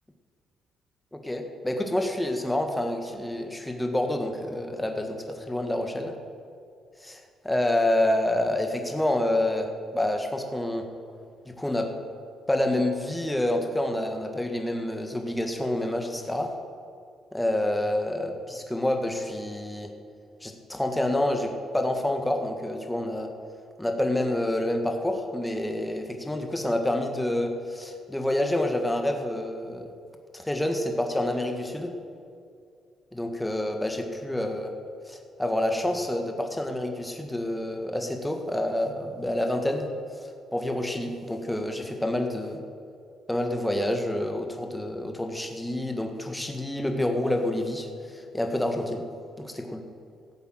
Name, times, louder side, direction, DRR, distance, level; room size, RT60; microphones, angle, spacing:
voice 1, 1.1-6.1 7.0-10.9 11.5-11.9 12.5-16.5 17.3-19.9 20.4-23.3 23.8-29.9 30.3-31.9 33.1-34.7 35.1-39.9 40.5-42.6 43.3-47.9 48.3-49.1 49.4-49.8, left 1 dB, 10° left, 4 dB, 1.5 m, -28 dB
14.5 x 8.2 x 7.7 m, 2.3 s
cardioid pair, 90°, 0 cm